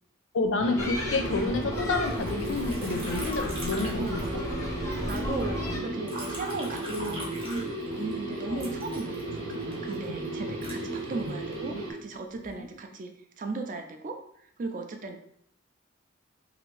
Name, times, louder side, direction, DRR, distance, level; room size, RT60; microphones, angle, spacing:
voice 1, 0.3-4.1 5.7-5.8 8.5-8.6, left 3 dB, 70° left, 6 dB, 0.4 m, -29 dB
sound 1, 0.6-11.9, right 1 dB, 75° right, 0.9 m, -35 dB
sound 2, 0.8-5.8, left 1 dB, 15° left, 0.5 m, -35 dB
Liquid, 2.1-4.6 4.9-8.1 8.6-11.6 12.1-12.7, equal, 25° right, 0.7 m, -42 dB
voice 2, 4.0-14.2 14.6-15.2, right 3 dB, 40° right, 5 dB, 0.3 m, -37 dB
2.7 x 2.5 x 3.1 m, 0.70 s
head